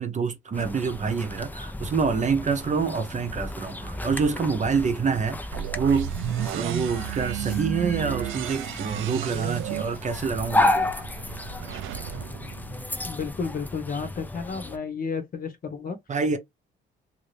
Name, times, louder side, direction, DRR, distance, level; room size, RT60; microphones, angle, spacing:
voice 1, 0.0-5.4 5.7-6.1 6.5-10.9 16.1-16.4, right 5 dB, 35° right, 0.8 m, -26 dB
sound 1, 0.5-14.8, left 2 dB, 10° left, 0.5 m, -32 dB
sound 2, 5.5-13.4, right 11 dB, 85° right, 0.5 m, -33 dB
voice 2, 13.0-16.0, left 5 dB, 45° left, 1.0 m, -32 dB
2.6 x 2.6 x 3.3 m
cardioid pair, 90°, 20 cm